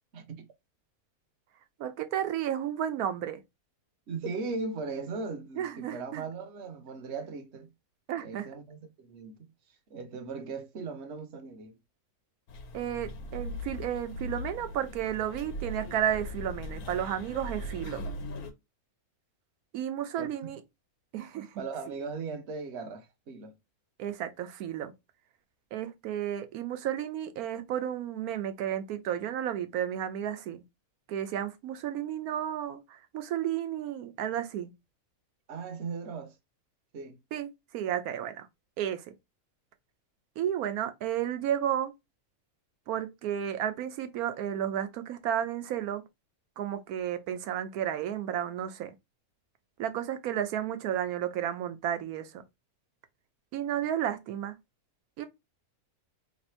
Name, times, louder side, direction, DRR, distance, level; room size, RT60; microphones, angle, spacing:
voice 1, 0.1-0.5 4.1-7.7 8.2-9.5 9.9-11.8 20.2-20.5 21.6-23.6 35.5-36.4 36.9-37.2, right 4 dB, 55° right, 1.0 m, -38 dB
voice 2, 1.8-3.4 5.6-6.2 8.1-8.5 12.7-18.0 19.7-20.6 21.1-21.6 24.0-24.9 25.7-30.6 31.1-34.7 37.3-38.5 38.8-39.0 40.4-41.9 42.9-46.0 46.6-48.9 49.8-52.4 53.5-54.6 55.2-55.3, right 10 dB, 80° right, 1.1 m, -32 dB
sound 1, 12.5-18.5, left 1 dB, 85° left, 1.3 m, -39 dB
3.3 x 2.5 x 4.3 m
omnidirectional pair, 1.5 m